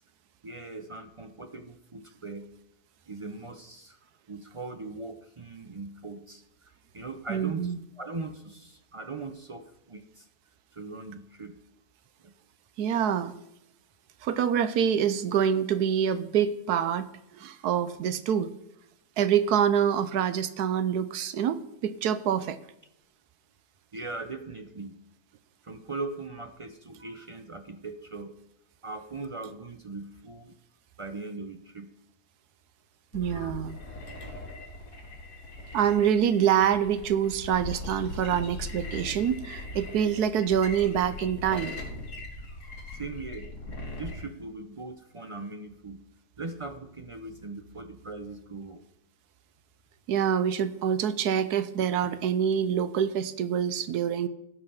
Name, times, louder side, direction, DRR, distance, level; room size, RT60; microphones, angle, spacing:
voice 1, 0.4-2.5 3.1-4.0 4.3-6.4 6.9-10.3 10.7-11.6 12.2-12.3 23.9-25.0 25.6-28.4 28.8-30.5 31.0-31.9 43.0-43.5 44.0-46.0 46.4-48.8, right 3 dB, 50° right, 7 dB, 0.3 m, -40 dB
voice 2, 7.3-7.8 12.8-13.4 14.2-17.1 17.3-18.5 19.2-22.6 33.1-33.8 35.7-41.8 50.1-54.3, right 8 dB, 80° right, 13 dB, 1.2 m, -26 dB
sound 1, 33.1-44.2, left 2 dB, 75° left, 2.5 m, -40 dB
16.5 x 5.6 x 5.6 m, 0.83 s
omnidirectional pair, 1.7 m